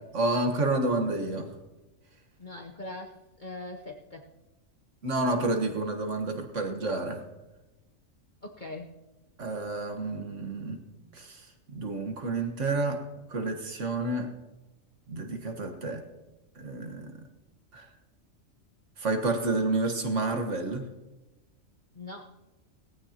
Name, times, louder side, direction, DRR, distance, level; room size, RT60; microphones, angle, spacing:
voice 1, 0.1-1.5 5.0-7.2 9.4-10.8 11.1-13.0 13.3-14.3 15.1-16.0 16.6-17.2 17.7-17.9 19.0-20.8, right 2 dB, 65° right, 4 dB, 1.8 m, -29 dB
voice 2, 2.4-4.3 8.4-8.9 21.9-22.3, left 2 dB, 40° left, 1 dB, 1.0 m, -41 dB
19.0 x 15.0 x 2.9 m, 1.1 s
omnidirectional pair, 1.4 m